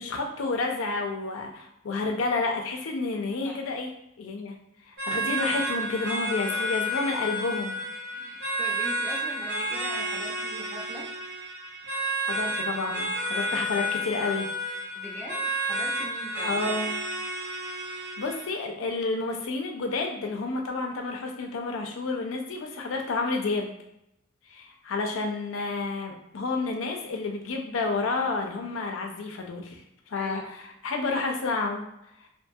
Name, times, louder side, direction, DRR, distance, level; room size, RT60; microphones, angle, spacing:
voice 1, 0.0-3.9 4.2-4.6 4.9-7.8 12.3-14.5 16.4-16.9 17.9-23.7 24.5-31.8, left 3 dB, 80° left, 2 dB, 0.5 m, -30 dB
sound 1, 5.0-18.6, right 1 dB, 60° right, 0.7 m, -31 dB
voice 2, 6.4-7.0 8.0-11.1 14.9-16.6 30.1-30.5, equal, 10° left, -3 dB, 0.5 m, -42 dB
2.6 x 2.2 x 2.7 m, 0.83 s
head